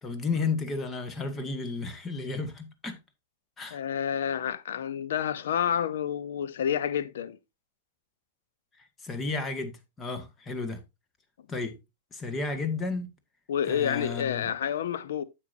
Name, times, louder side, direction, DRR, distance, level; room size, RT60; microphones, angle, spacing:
voice 1, 0.0-3.0 3.6-3.8 8.8-10.8 11.5-11.8 12.1-13.1 13.7-14.5, left 4 dB, 20° left, 1.8 m, -33 dB
voice 2, 3.7-7.4 13.5-15.2, left 9 dB, 65° left, 0.8 m, -29 dB
9.4 x 7.7 x 2.7 m
hypercardioid pair, 100°, 0 cm